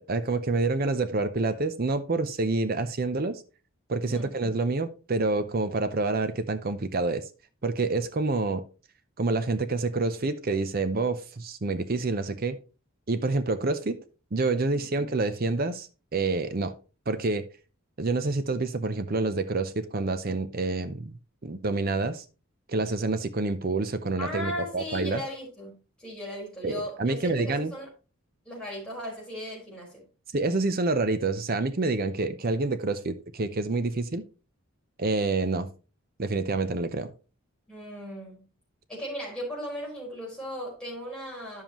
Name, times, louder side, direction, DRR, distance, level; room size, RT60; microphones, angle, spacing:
voice 1, 0.0-3.4 3.9-7.2 7.6-8.6 9.2-12.6 13.1-14.0 14.3-16.7 17.1-17.5 18.0-21.1 21.4-22.2 22.7-25.2 26.6-27.7 30.3-34.2 35.0-35.7 36.2-37.1, right 3 dB, 45° right, 0.6 m, -27 dB
voice 2, 24.2-27.9 28.4-30.1 37.7-38.4 38.9-41.6, equal, 5° left, 4.5 m, -37 dB
10.5 x 7.2 x 3.0 m
head